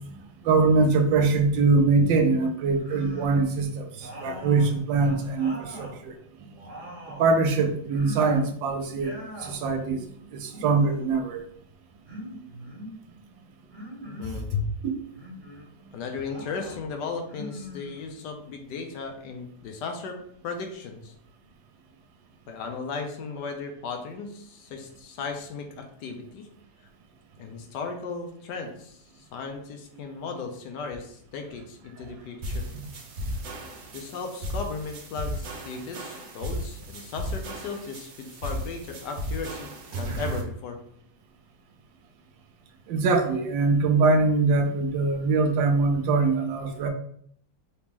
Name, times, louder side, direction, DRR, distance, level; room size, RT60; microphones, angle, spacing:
voice 1, 0.4-3.9 4.2-6.1 7.2-9.1 9.4-10.0 10.4-11.4 42.9-46.9, right 3 dB, 85° right, 5 dB, 1.4 m, -22 dB
sound 1, 2.7-3.5 4.0-6.0 6.4-7.3 7.9-8.6 8.9-9.6 10.4-11.2 12.0-12.9 13.7-14.4 15.1-15.7 16.2-16.8 17.2-18.3, left 1 dB, 40° right, 1.9 m, -42 dB
voice 2, 14.0-14.6 15.9-21.1 22.5-26.5 27.4-32.7 33.9-40.8, left 4 dB, 70° left, 4 dB, 1.2 m, -36 dB
sound 2, 32.4-40.4, equal, 60° right, 1.1 m, -35 dB
4.0 x 3.0 x 3.5 m, 0.65 s
omnidirectional pair, 2.0 m